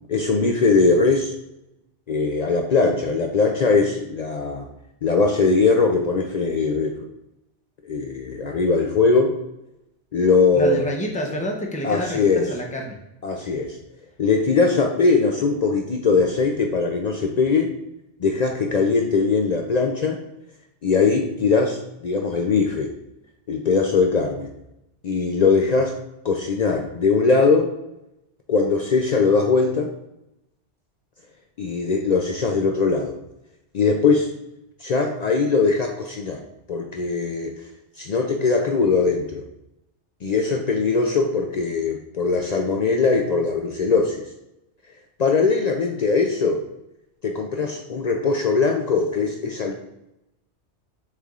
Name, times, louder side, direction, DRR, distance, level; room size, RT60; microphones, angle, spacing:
voice 1, 0.1-1.3 2.1-4.7 5.0-7.1 7.9-9.3 10.1-10.8 11.8-12.5 13.2-13.8 14.2-17.7 18.2-20.2 20.8-22.9 23.5-24.5 25.0-26.0 26.2-27.7 28.5-29.9 31.6-33.2 33.7-34.3 34.8-36.4 36.7-37.5 38.0-39.4 40.2-44.2 45.2-46.6 47.2-49.7, left 4 dB, 65° left, 2 dB, 0.4 m, -20 dB
voice 2, 10.5-13.0 13.4-13.6, equal, 10° left, 0 dB, 0.5 m, -28 dB
6.5 x 3.4 x 2.4 m, 0.88 s
omnidirectional pair, 1.2 m